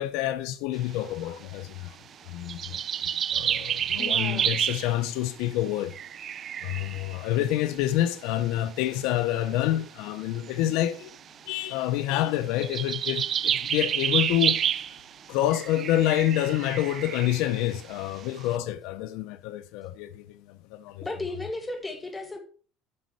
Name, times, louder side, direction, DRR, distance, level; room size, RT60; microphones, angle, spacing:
voice 1, 0.0-2.0 2.3-2.8 3.3-5.9 6.6-11.1 11.5-14.7 15.3-21.0, left 13 dB, 80° left, 0.7 m, -28 dB
sound 1, 2.5-5.0 5.9-7.5 8.1-8.2 9.0-9.1 10.6-11.2 12.6-15.1 15.5-17.9, right 9 dB, 40° right, 0.3 m, -29 dB
voice 2, 4.0-4.6 21.0-22.4, left 2 dB, 15° left, 2.0 m, -35 dB
9.7 x 6.5 x 4.6 m
cardioid pair, 140°, 0 cm